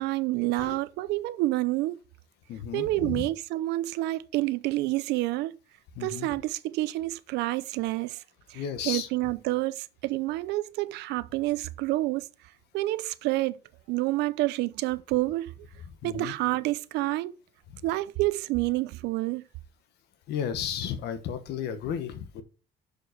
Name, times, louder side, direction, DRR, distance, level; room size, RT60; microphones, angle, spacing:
voice 1, 0.0-2.0 2.7-5.6 6.0-8.2 8.5-12.2 12.7-13.6 13.9-15.5 16.0-17.4 17.8-19.4, right 18 dB, 90° right, 0.6 m, -28 dB
voice 2, 2.5-3.3 6.0-6.3 8.5-9.1 16.0-16.3 20.3-22.4, left 8 dB, 80° left, 1.1 m, -33 dB
6.4 x 5.1 x 6.4 m
cardioid pair, 110°, 17 cm